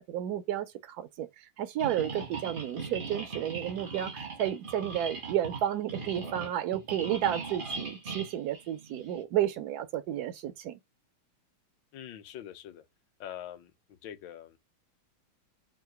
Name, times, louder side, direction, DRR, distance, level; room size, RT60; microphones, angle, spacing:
voice 1, 0.0-10.8, right 11 dB, 90° right, 0.8 m, -32 dB
sound 1, 1.8-9.2, right 4 dB, 55° right, 0.5 m, -39 dB
voice 2, 11.9-12.8 13.2-13.7 14.0-14.6, left 10 dB, 75° left, 1.2 m, -43 dB
3.8 x 2.2 x 4.4 m
omnidirectional pair, 2.3 m